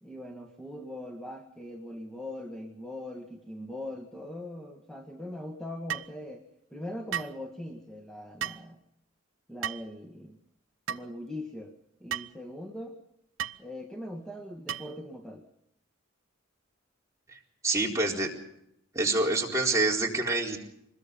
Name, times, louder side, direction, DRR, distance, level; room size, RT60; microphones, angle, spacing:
voice 1, 0.0-8.8 9.5-10.4 10.9-11.7 12.0-13.0 13.6-15.4, left 1 dB, 5° left, 0 dB, 1.7 m, -41 dB
sound 1, 5.9-6.1 7.1-7.4 8.4-8.7 9.6-9.9 10.9-11.1 12.1-12.3 13.4-13.6 14.7-15.0, right 9 dB, 65° right, 0.7 m, -34 dB
voice 2, 17.6-18.3 18.9-20.6, right 2 dB, 15° right, -2 dB, 4.1 m, -26 dB
25.5 x 21.5 x 5.3 m, 0.79 s
head